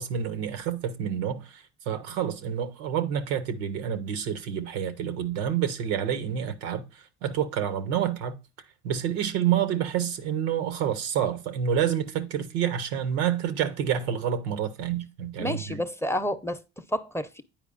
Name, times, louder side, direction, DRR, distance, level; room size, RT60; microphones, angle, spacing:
voice 1, 0.0-8.4 8.8-15.8, right 9 dB, 85° right, 0.8 m, -28 dB
voice 2, 15.4-17.4, left 1 dB, 10° left, 0.6 m, -30 dB
9.0 x 4.7 x 2.5 m
hypercardioid pair, 65°, 31 cm